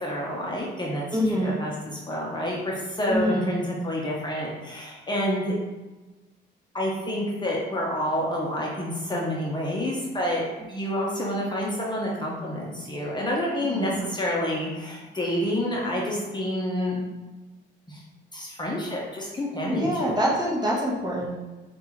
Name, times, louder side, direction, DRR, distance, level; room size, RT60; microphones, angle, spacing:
voice 1, 0.0-1.0 1.4-5.5 6.7-10.4 10.7-17.0 17.9-18.0 18.3-20.1, left 1 dB, 20° left, -3 dB, 0.8 m, -28 dB
voice 2, 1.1-1.6 3.1-3.5 13.7-14.0 19.7-21.4, equal, 20° right, -4 dB, 1.1 m, -25 dB
5.3 x 2.6 x 3.1 m, 1.2 s
cardioid pair, 90°, 20 cm